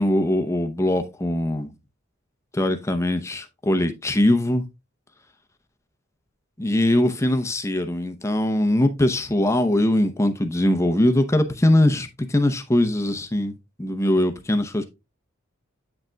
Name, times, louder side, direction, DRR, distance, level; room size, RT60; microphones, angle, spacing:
voice 1, 0.0-1.7 2.5-4.6 6.6-13.5 13.8-14.8, left 1 dB, 15° left, 0.7 m, -21 dB
8.7 x 6.4 x 2.2 m
head